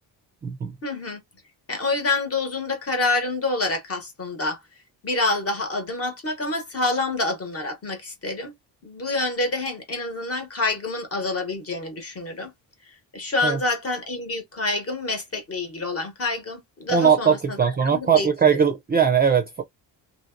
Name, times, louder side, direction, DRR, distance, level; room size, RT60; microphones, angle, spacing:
voice 1, 0.8-1.2 1.7-4.6 5.0-8.5 8.8-12.5 13.1-18.6, left 2 dB, 35° left, 1.1 m, -27 dB
voice 2, 16.9-19.6, right 7 dB, 25° right, 0.4 m, -20 dB
2.9 x 2.8 x 2.5 m
cardioid pair, 170°, 41 cm